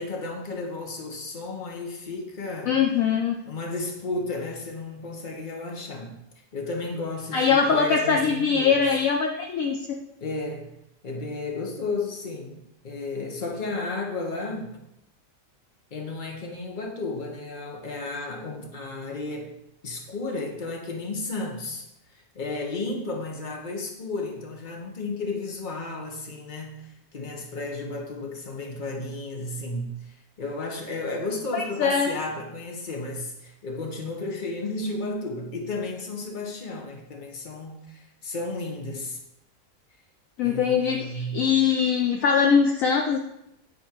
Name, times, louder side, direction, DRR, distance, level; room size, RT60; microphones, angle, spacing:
voice 1, 0.0-2.8 3.5-6.1 6.5-8.8 10.2-10.7 11.0-14.7 15.9-19.5 19.8-21.9 22.1-39.2 40.4-41.4, left 2 dB, 35° left, 1 dB, 1.2 m, -33 dB
voice 2, 2.7-3.3 7.3-9.8 31.5-32.1 40.4-43.2, left 6 dB, 65° left, 3 dB, 1.0 m, -22 dB
9.3 x 4.4 x 4.5 m, 0.84 s
omnidirectional pair, 1.7 m